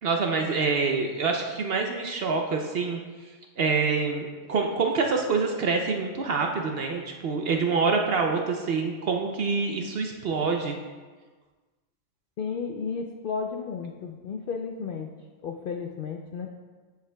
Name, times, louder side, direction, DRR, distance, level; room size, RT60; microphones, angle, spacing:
voice 1, 0.0-3.0 3.6-10.8, right 4 dB, 60° right, 2 dB, 0.7 m, -26 dB
voice 2, 12.4-15.1 15.4-16.5, left 5 dB, 70° left, 3 dB, 0.5 m, -33 dB
9.2 x 7.5 x 2.2 m, 1.4 s
omnidirectional pair, 1.4 m